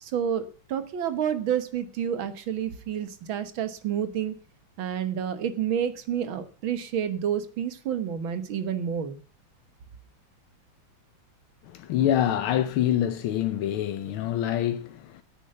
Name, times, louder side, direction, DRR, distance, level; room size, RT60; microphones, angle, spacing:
voice 1, 0.0-4.3 4.8-9.2, right 9 dB, 75° right, 2.0 m, -29 dB
voice 2, 11.6-15.2, left 11 dB, 90° left, 1.6 m, -26 dB
10.0 x 8.9 x 6.7 m
omnidirectional pair, 2.3 m